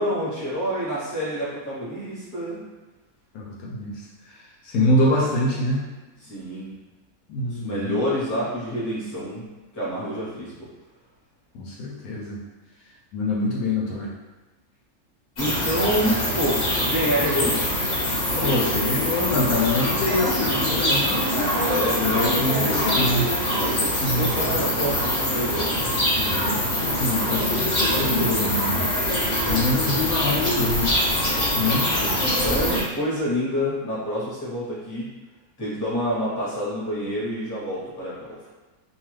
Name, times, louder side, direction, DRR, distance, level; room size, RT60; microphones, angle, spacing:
voice 1, 0.0-2.6 6.2-6.7 7.5-9.4 9.7-10.7 15.4-17.7 18.3-18.8 21.6-22.4 23.5-25.9 29.7-29.8 31.6-31.8 32.2-35.1 35.6-38.5, equal, 15° left, -8 dB, 0.8 m, -28 dB
voice 2, 3.3-4.0 4.6-5.9 7.3-8.0 11.5-12.4 13.1-14.1 18.3-21.2 22.0-23.3 24.0-24.6 26.1-28.9 29.5-30.9 31.5-31.9, left 2 dB, 75° left, -3 dB, 1.0 m, -25 dB
sound 1, 15.4-32.8, left 1 dB, 50° left, 0.5 m, -24 dB
2.6 x 2.3 x 3.2 m, 1.1 s
omnidirectional pair, 1.6 m